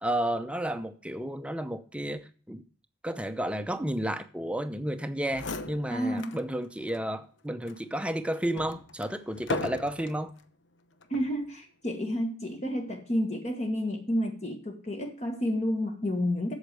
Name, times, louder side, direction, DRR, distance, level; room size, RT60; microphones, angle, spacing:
voice 1, 0.0-2.6 3.0-10.3, right 1 dB, 5° right, 0.7 m, -32 dB
sound 1, 5.0-5.1 5.3-6.4 6.9-7.0 7.7-10.2 11.0-11.4, left 3 dB, 75° left, 0.9 m, -37 dB
voice 2, 5.9-6.3 11.1-16.5, equal, 35° left, 1.5 m, -30 dB
8.3 x 7.2 x 6.7 m
head